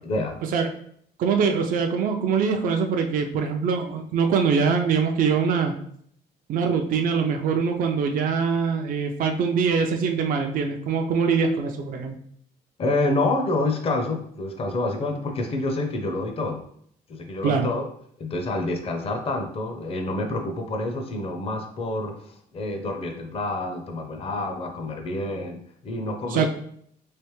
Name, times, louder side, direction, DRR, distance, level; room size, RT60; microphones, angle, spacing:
voice 1, 0.0-0.3 12.8-16.6 17.1-17.9 18.2-26.5, left 2 dB, 35° left, 4 dB, 0.6 m, -28 dB
voice 2, 1.2-5.7 6.5-12.2 17.4-17.7 26.3-26.5, right 5 dB, 55° right, 4 dB, 0.4 m, -23 dB
3.3 x 2.9 x 3.1 m, 0.66 s
cardioid pair, 110°, 17 cm